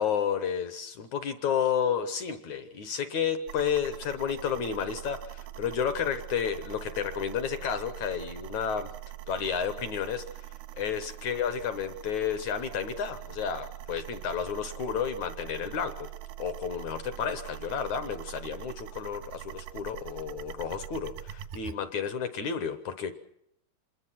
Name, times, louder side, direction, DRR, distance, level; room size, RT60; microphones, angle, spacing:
voice 1, 0.0-8.9 9.3-10.2 10.8-16.1 16.4-23.1, left 7 dB, 65° left, 11 dB, 2.0 m, -31 dB
sound 1, 3.5-21.8, right 14 dB, 85° right, 3.2 m, -43 dB
27.0 x 21.5 x 5.9 m, 0.77 s
omnidirectional pair, 4.5 m